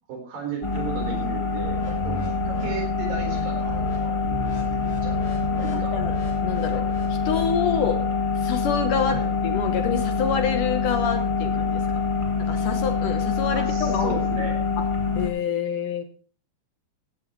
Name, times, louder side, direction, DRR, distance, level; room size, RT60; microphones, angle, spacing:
voice 1, 0.1-2.2 2.5-5.2 5.5-6.0 9.1-9.3 13.6-14.6, right 4 dB, 65° right, 2 dB, 5.8 m, -35 dB
sound 1, 0.6-15.3, left 4 dB, 10° left, 1.4 m, -25 dB
sound 2, 1.6-2.7 3.1-3.4 3.7-4.0 4.2-7.5, left 2 dB, 45° left, 4.3 m, -34 dB
voice 2, 5.7-6.1 6.4-8.0 8.4-12.0 12.4-14.4 14.8-14.9 15.2-16.0, left 7 dB, 65° left, 7 dB, 2.4 m, -27 dB
15.5 x 15.5 x 3.1 m, 0.40 s
omnidirectional pair, 4.4 m